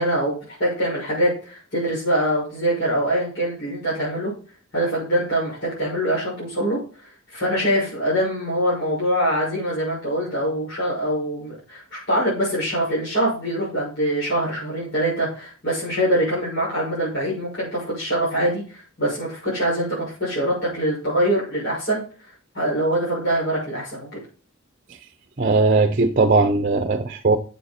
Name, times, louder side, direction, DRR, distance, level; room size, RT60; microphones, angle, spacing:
voice 1, 0.0-4.3 4.7-24.2, right 1 dB, 55° left, 6.2 m, -24 dB
voice 2, 25.4-27.4, right 3 dB, 40° right, 0.8 m, -18 dB
9.9 x 7.4 x 4.4 m
head